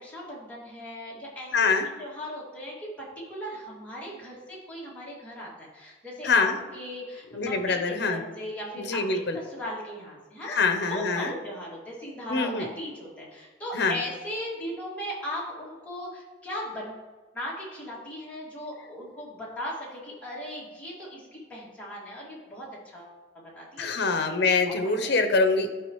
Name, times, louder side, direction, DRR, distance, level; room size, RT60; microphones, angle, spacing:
voice 1, 0.0-1.5 2.0-2.9 3.3-10.6 10.9-17.0 17.3-24.4 24.7-24.8 25.0-25.1, equal, 10° left, -7 dB, 2.4 m, -38 dB
voice 2, 1.5-1.9 6.2-6.6 7.3-8.2 8.8-9.4 10.4-11.3 12.3-12.7 13.7-14.0 23.8-25.7, left 4 dB, 65° left, 7 dB, 0.8 m, -24 dB
11.5 x 5.0 x 3.1 m, 1.3 s
head